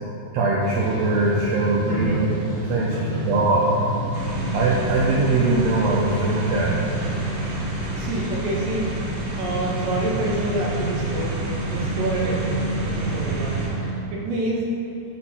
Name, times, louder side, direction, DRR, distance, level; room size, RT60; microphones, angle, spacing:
voice 1, 0.3-2.3 2.6-2.9 3.3-3.6 4.5-6.8, right 3 dB, 85° right, -4 dB, 1.5 m, -21 dB
sound 1, 0.6-13.9, right 2 dB, 55° right, 1.4 m, -31 dB
voice 2, 1.8-2.3 2.9-3.3 8.0-9.0 9.4-11.4 11.7-13.8 14.1-14.8, right 1 dB, 70° right, -3 dB, 1.7 m, -28 dB
sound 2, 4.1-13.7, right 1 dB, 35° right, 1.4 m, -30 dB
6.3 x 4.3 x 5.6 m, 2.8 s
omnidirectional pair, 3.8 m